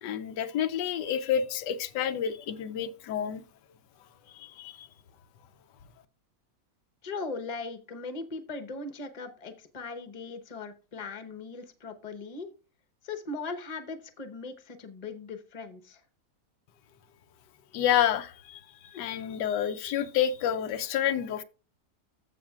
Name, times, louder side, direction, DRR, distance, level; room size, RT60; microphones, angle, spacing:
voice 1, 0.0-3.4 4.4-4.9 17.7-21.4, left 9 dB, 90° left, 1.3 m, -29 dB
voice 2, 7.0-12.5 13.0-16.0, left 3 dB, 30° left, 0.9 m, -39 dB
14.5 x 5.7 x 2.4 m
omnidirectional pair, 1.8 m